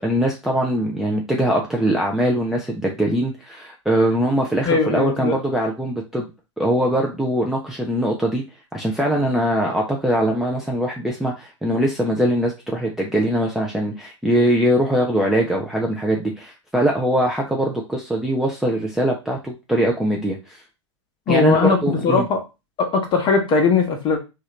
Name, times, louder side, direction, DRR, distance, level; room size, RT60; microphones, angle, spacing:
voice 1, 0.0-6.3 6.6-8.4 8.7-20.6 21.3-22.2, right 1 dB, ahead, 0.5 m, -22 dB
voice 2, 4.6-5.4 21.3-22.4 22.8-24.2, left 4 dB, 30° left, 0.9 m, -19 dB
3.0 x 2.4 x 2.9 m
figure-of-eight pair, 100°, 16 cm